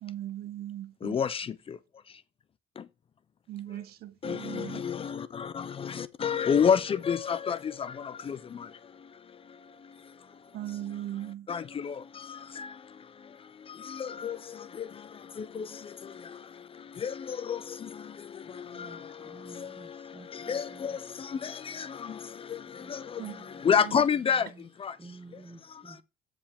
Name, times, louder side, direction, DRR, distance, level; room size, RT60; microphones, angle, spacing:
voice 1, 0.0-1.2 3.5-4.9 10.5-11.5 23.2-23.4 23.7-23.9, right 13 dB, 65° right, 0.6 m, -39 dB
voice 2, 1.0-1.8 4.2-8.7 11.5-12.0 12.3-12.7 13.8-14.9 15.4-15.7 17.0-18.0 18.5-19.9 20.3-23.2 23.6-24.5 24.8-24.9, left 7 dB, 35° left, 0.5 m, -30 dB
voice 3, 18.6-21.0 22.7-23.8 24.1-24.7 25.0-26.0, right 3 dB, 15° right, 0.9 m, -52 dB
14.0 x 4.9 x 3.5 m
cardioid pair, 110°, 17 cm